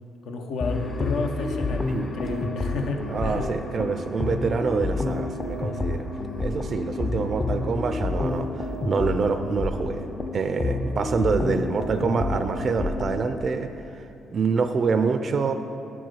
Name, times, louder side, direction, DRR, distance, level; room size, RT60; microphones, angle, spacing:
voice 1, 0.3-1.9 2.1-3.5, left 3 dB, 80° left, 4 dB, 0.7 m, -31 dB
sound 1, 0.6-13.4, left 2 dB, 30° left, 0.5 m, -29 dB
voice 2, 3.1-6.1 6.4-10.1 10.3-14.0 14.3-15.5, right 5 dB, 50° right, 9 dB, 0.3 m, -26 dB
7.7 x 4.6 x 6.1 m, 2.8 s
cardioid pair, 90°, 0 cm